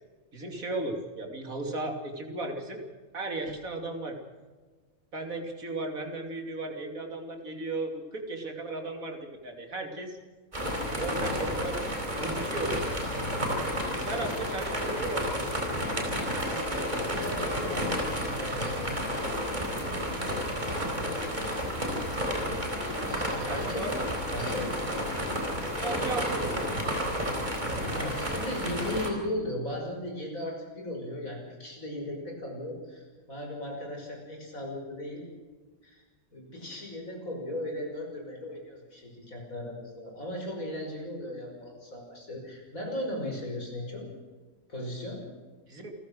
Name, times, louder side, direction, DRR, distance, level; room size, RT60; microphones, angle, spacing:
voice 1, 0.3-2.8 3.1-4.1 5.1-10.2 10.9-11.8 12.2-12.9 13.9-15.6 23.5-23.9 25.6-26.6 45.7-45.9, right 2 dB, 85° right, 4 dB, 3.3 m, -35 dB
sound 1, 10.5-29.1, equal, 35° right, 4.3 m, -31 dB
voice 2, 16.4-18.9 23.1-24.0 24.3-24.8 27.9-35.3 35.8-36.0 36.3-44.1 44.7-45.2, left 1 dB, 85° left, 1 dB, 6.3 m, -37 dB
28.0 x 15.0 x 6.4 m, 1.4 s
omnidirectional pair, 1.4 m